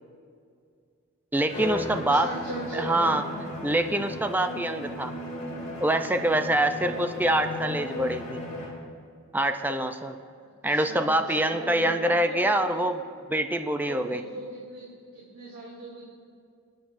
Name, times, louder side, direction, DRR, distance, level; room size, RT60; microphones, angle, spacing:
voice 1, 1.3-2.3 2.7-3.2 3.6-5.1 5.8-8.4 9.3-10.2 10.6-13.0 13.3-14.2, right 1 dB, 10° right, 8 dB, 0.4 m, -25 dB
Bowed string instrument, 1.5-8.9, left 2 dB, 35° left, 2.6 m, -36 dB
voice 2, 1.8-3.5 10.6-12.8 13.8-16.0, right 1 dB, 75° right, -6 dB, 2.6 m, -38 dB
27.5 x 9.3 x 2.6 m, 2.3 s
head